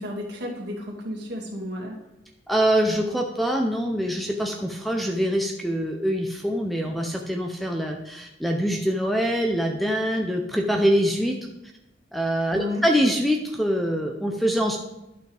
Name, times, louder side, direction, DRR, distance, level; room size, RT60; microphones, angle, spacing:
voice 1, 0.0-2.0 12.5-12.9, left 1 dB, 60° right, -2 dB, 2.1 m, -32 dB
voice 2, 2.5-11.4 12.1-14.8, equal, ahead, 2 dB, 0.6 m, -24 dB
11.5 x 5.8 x 3.4 m, 0.92 s
head